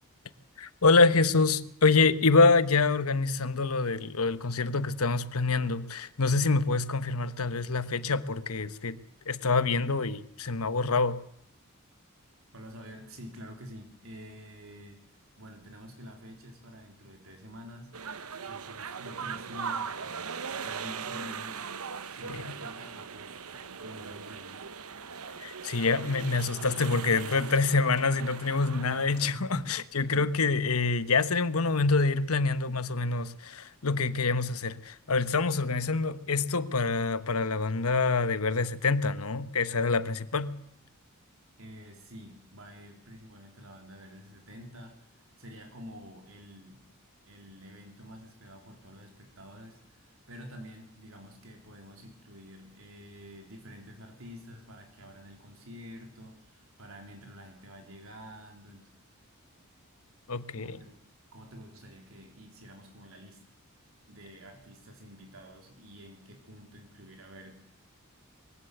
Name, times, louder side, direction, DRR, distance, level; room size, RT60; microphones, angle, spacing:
voice 1, 0.6-9.0 9.3-11.2 22.3-22.5 25.4-40.5 60.3-60.8, left 3 dB, 85° left, 1.2 m, -26 dB
voice 2, 12.5-17.9 18.5-21.6 22.1-24.7 29.1-30.1 41.6-46.8 47.3-58.9 60.5-61.0 61.3-63.4 64.1-67.5, equal, 70° right, 3.8 m, -48 dB
sound 1, 17.9-29.3, right 6 dB, 85° right, 1.1 m, -39 dB
22.5 x 16.0 x 8.0 m
head